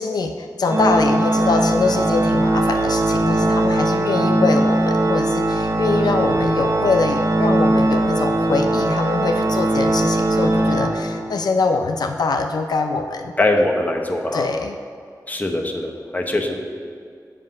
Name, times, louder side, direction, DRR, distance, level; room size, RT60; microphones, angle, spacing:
voice 1, 0.0-13.3 14.3-14.7, left 4 dB, 80° left, 6 dB, 0.4 m, -23 dB
Organ, 0.6-11.5, right 1 dB, 55° right, 0.8 m, -19 dB
voice 2, 13.4-14.5 15.3-16.6, left 1 dB, 25° left, 2 dB, 0.9 m, -22 dB
7.7 x 5.2 x 5.3 m, 2.3 s
wide cardioid pair, 95°, 7 cm